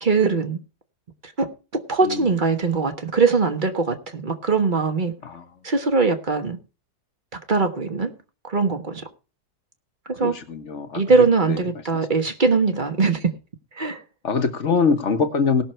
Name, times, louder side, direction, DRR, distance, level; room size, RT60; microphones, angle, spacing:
voice 1, 0.0-0.6 1.4-5.1 5.6-6.6 7.5-8.1 8.4-9.0 10.1-10.4 10.9-13.3 13.8-14.0, right 4 dB, 30° right, 1.3 m, -21 dB
voice 2, 10.2-11.0 11.5-11.6 12.1-12.2 14.2-15.6, left 5 dB, 50° left, 1.4 m, -23 dB
18.0 x 6.4 x 4.4 m
omnidirectional pair, 1.7 m